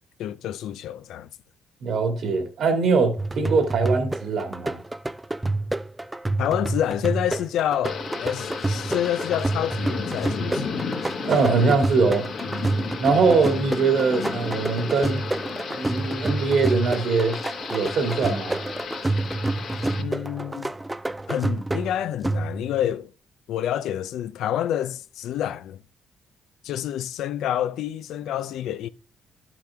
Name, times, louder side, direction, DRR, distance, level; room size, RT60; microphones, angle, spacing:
voice 1, 0.2-1.3 6.4-10.8 20.0-20.7 21.3-23.1 23.5-25.8 26.6-28.9, left 11 dB, 80° left, 0.5 m, -28 dB
voice 2, 1.8-4.8 11.2-12.3 13.0-15.2 15.7-17.4 17.7-18.6, right 4 dB, 65° right, 2.2 m, -22 dB
sound 1, 3.2-22.8, right 2 dB, 10° right, 0.4 m, -29 dB
Thunder / Rain, 7.8-20.0, left 5 dB, 65° left, 1.6 m, -34 dB
11.5 x 6.0 x 3.4 m
cardioid pair, 90°, 0 cm